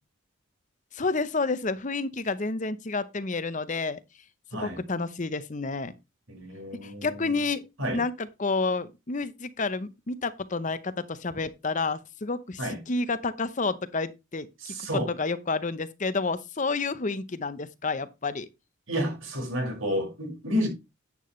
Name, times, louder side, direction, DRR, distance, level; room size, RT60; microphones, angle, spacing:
voice 1, 0.9-4.0 4.6-5.9 6.8-7.6 7.9-12.6 12.9-18.5, left 3 dB, 40° left, 0.8 m, -30 dB
voice 2, 4.5-4.8 6.3-7.4 7.8-8.0 12.6-12.8 14.6-15.1 18.9-20.7, equal, 90° right, 5.5 m, -30 dB
10.5 x 8.6 x 3.2 m
head